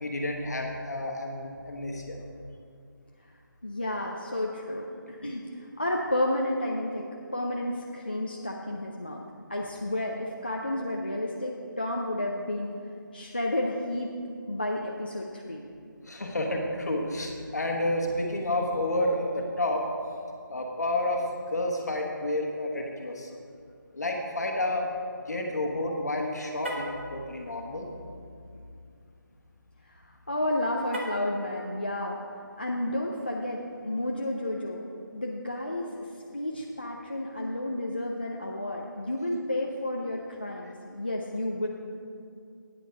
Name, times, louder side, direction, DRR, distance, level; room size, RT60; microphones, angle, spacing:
voice 1, 0.0-2.2 16.0-19.8 20.5-21.2 21.5-23.3 23.9-24.9 25.3-27.9, left 1 dB, 50° left, 1 dB, 1.4 m, -30 dB
voice 2, 3.6-7.1 7.3-9.2 9.5-12.7 13.1-14.1 14.5-15.6 29.8-32.2 32.6-34.8 35.1-36.1 36.3-41.7, left 1 dB, 30° left, -1 dB, 0.4 m, -31 dB
Car, 26.5-27.0 30.9-31.4, equal, 35° right, 1.0 m, -36 dB
9.1 x 7.0 x 5.2 m, 2.4 s
figure-of-eight pair, 175°, 11 cm